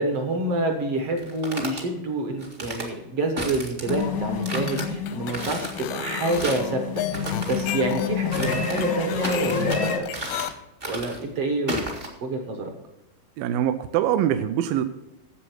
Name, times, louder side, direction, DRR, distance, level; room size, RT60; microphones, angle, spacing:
voice 1, 0.0-10.1 10.9-11.8 12.2-12.7, right 2 dB, 60° right, 4 dB, 1.7 m, -27 dB
sound 1, 1.2-1.8 2.4-2.9 3.4-4.0 4.4-4.8 5.3-5.8 6.2-6.7 7.1-7.8 8.3-8.9 9.2-9.8 10.1-10.5 10.8-11.2 11.7-12.1, right 1 dB, 45° right, 0.7 m, -33 dB
sound 2, 3.9-10.0, left 6 dB, 70° left, 1.0 m, -29 dB
sound 3, 4.4-10.5, left 11 dB, 85° left, 2.6 m, -34 dB
voice 2, 13.4-14.8, right 11 dB, 80° right, 8 dB, 2.2 m, -23 dB
10.0 x 7.6 x 6.1 m, 0.94 s
omnidirectional pair, 4.3 m